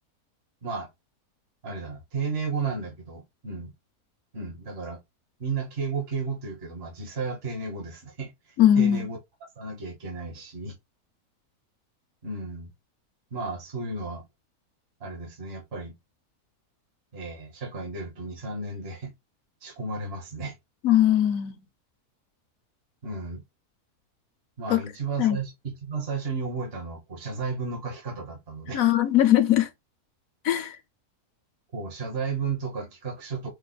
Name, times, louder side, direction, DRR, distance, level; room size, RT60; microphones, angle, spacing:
voice 1, 1.6-3.7 4.3-5.0 5.4-8.3 8.7-9.2 9.6-10.8 12.2-12.7 13.3-14.3 15.0-15.9 17.1-19.1 19.6-20.5 23.0-23.4 24.6-28.8 31.7-33.5, right 4 dB, 45° right, 1.5 m, -33 dB
voice 2, 8.6-9.1 20.8-21.6 24.7-24.8 25.2-25.4 28.7-29.7 30.4-30.8, left 11 dB, 70° left, 1.1 m, -20 dB
5.2 x 2.3 x 4.0 m
omnidirectional pair, 1.6 m